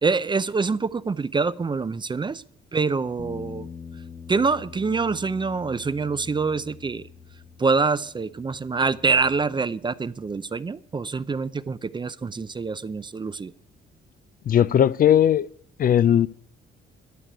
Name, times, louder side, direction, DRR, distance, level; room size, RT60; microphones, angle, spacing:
voice 1, 0.0-2.4 2.7-3.7 4.3-7.0 7.6-13.5, right 4 dB, 25° right, 0.5 m, -25 dB
Bass guitar, 3.2-9.4, left 6 dB, 20° left, 0.9 m, -44 dB
voice 2, 14.5-15.5 15.8-16.3, left 10 dB, 45° left, 0.4 m, -18 dB
12.5 x 6.4 x 9.4 m
cardioid pair, 90°, 20 cm